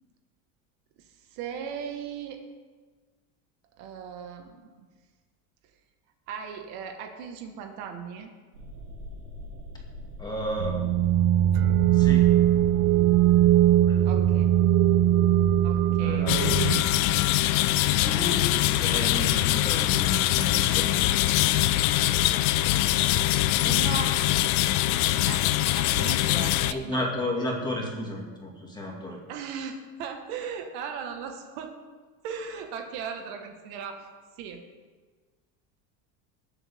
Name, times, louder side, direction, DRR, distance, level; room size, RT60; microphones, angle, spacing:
voice 1, 1.0-2.4 3.8-4.9 6.3-8.3 14.0-14.5 15.6-16.3 23.6-24.2 25.3-25.5 25.8-27.1 29.3-31.8 32.2-34.1 34.4-34.6, right 7 dB, 60° right, 5 dB, 1.5 m, -37 dB
sound 1, 8.5-16.7, equal, 85° right, 4.0 m, -43 dB
voice 2, 10.2-10.9 11.9-12.4 13.9-14.0 16.0-16.6 18.0-20.9 26.7-29.2, left 1 dB, 10° left, -1 dB, 2.0 m, -33 dB
sound 2, 10.6-16.8, right 12 dB, 40° right, 0.5 m, -20 dB
sound 3, 16.3-26.7, left 15 dB, 85° left, 0.6 m, -23 dB
19.5 x 7.8 x 3.6 m, 1.4 s
supercardioid pair, 150°, 42 cm